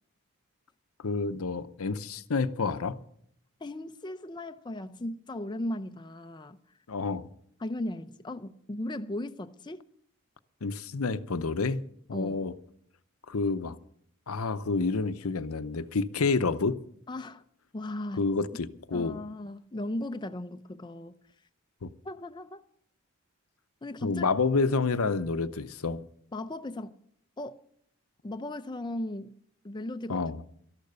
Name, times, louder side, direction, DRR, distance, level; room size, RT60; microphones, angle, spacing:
voice 1, 1.0-3.0 6.9-7.3 10.6-12.5 13.3-13.8 14.3-16.8 18.1-19.2 21.8-21.9 24.0-26.0 30.1-30.4, left 4 dB, 80° left, 0.7 m, -29 dB
voice 2, 3.6-6.6 7.6-9.8 12.1-12.5 17.1-17.4 17.7-18.2 18.9-21.2 22.0-22.6 23.8-24.3 26.3-27.0 27.4-27.6 28.2-29.4 29.6-30.2, left 1 dB, 20° left, 0.5 m, -37 dB
13.0 x 11.5 x 6.8 m
head